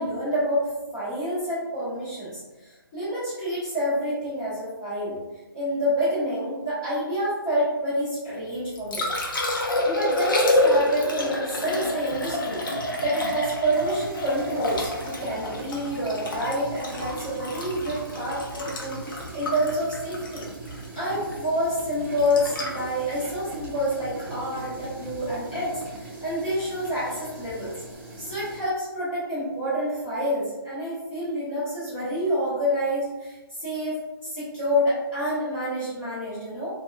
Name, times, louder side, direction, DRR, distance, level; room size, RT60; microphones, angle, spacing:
voice 1, 0.0-5.2 5.5-9.1 9.8-20.5 20.9-27.7 28.2-36.8, equal, 20° left, -13 dB, 0.9 m, -28 dB
Liquid, 8.5-24.6 27.4-27.5, left 1 dB, 60° left, 0.6 m, -28 dB
sound 1, 12.1-26.0, right 3 dB, 85° right, 0.4 m, -43 dB
sound 2, 13.7-28.6, right 2 dB, 35° right, 0.7 m, -42 dB
2.8 x 2.2 x 2.2 m, 1.2 s
hypercardioid pair, 170°, 12 cm